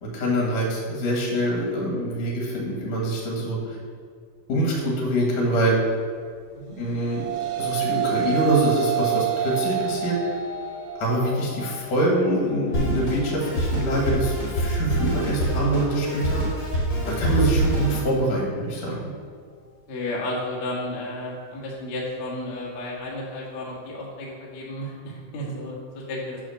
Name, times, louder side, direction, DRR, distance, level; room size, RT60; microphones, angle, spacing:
voice 1, 0.0-3.8 4.5-5.8 6.8-7.2 7.6-10.2 11.0-16.4 17.1-19.0, right 1 dB, 60° left, -2 dB, 1.8 m, -24 dB
sound 1, 6.8-16.0, right 10 dB, 80° right, 2.5 m, -30 dB
Drum kit, 12.7-18.1, right 1 dB, 40° left, 1.2 m, -25 dB
voice 2, 19.9-26.4, left 1 dB, 85° left, -4 dB, 1.2 m, -32 dB
8.6 x 3.7 x 6.3 m, 2.1 s
omnidirectional pair, 5.4 m